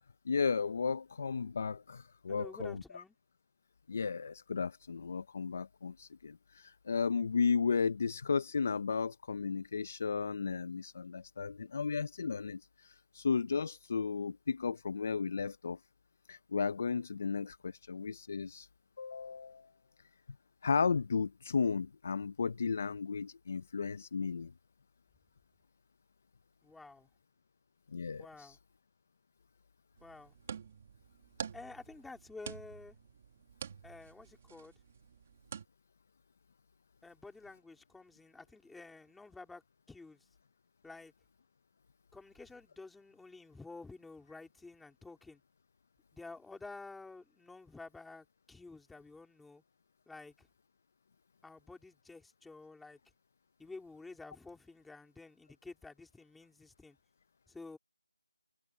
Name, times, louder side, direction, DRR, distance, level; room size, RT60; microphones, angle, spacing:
voice 1, 0.3-2.7 3.9-15.8 16.3-18.7 19.0-19.7 20.6-24.5 27.9-28.6, left 5 dB, 25° left, 0.5 m, -34 dB
voice 2, 2.3-3.1 26.6-27.1 28.2-28.6 30.0-30.3 31.5-33.0 33.8-34.7 37.0-39.6 39.9-40.3 40.8-41.1 42.1-45.4 46.1-49.6 50.1-50.5 51.4-53.0 53.6-57.0 57.5-57.8, left 3 dB, ahead, 3.2 m, -51 dB
sound 1, 30.0-35.6, right 7 dB, 20° right, 1.6 m, -48 dB
figure-of-eight pair, 175°, 3 cm